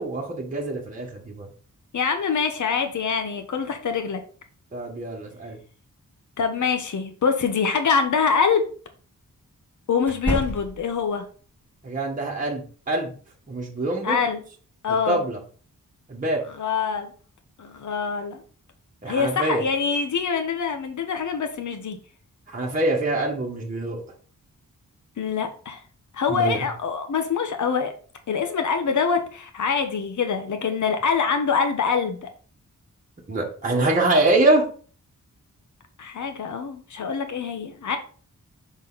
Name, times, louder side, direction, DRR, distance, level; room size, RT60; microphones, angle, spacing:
voice 1, 0.0-1.5 4.7-5.6 11.8-13.1 13.5-14.2 15.1-15.4 16.1-16.4 19.0-19.6 22.5-24.0 26.3-26.6 33.3-34.6, right 2 dB, 25° right, -2 dB, 1.5 m, -24 dB
voice 2, 1.9-4.2 6.4-8.7 9.9-11.2 14.0-14.4 14.8-15.3 16.5-17.1 17.6-18.4 19.1-22.0 25.2-25.8 26.1-27.9 28.3-32.3 36.0-38.0, left 6 dB, 65° left, 6 dB, 0.9 m, -24 dB
sound 1, 7.8-8.0 10.0-11.0, equal, 5° left, 2.0 m, -29 dB
6.2 x 4.0 x 4.0 m, 0.41 s
wide cardioid pair, 130°, 33 cm